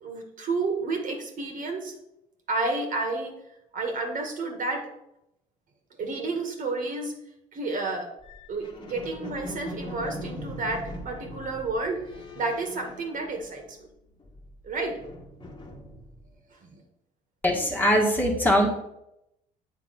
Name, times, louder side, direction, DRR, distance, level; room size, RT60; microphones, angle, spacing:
voice 1, 0.0-1.9 2.5-3.3 3.7-4.9 6.0-7.1 7.5-8.1 8.5-13.6 14.6-15.0 16.6-16.8, right 3 dB, 50° right, 3 dB, 1.8 m, -30 dB
sound 1, 8.2-13.8 14.1-16.4, equal, 25° left, 1.4 m, -41 dB
voice 2, 17.4-18.7, equal, 10° left, -1 dB, 1.6 m, -21 dB
8.2 x 4.2 x 5.9 m, 0.83 s
cardioid pair, 110°, 17 cm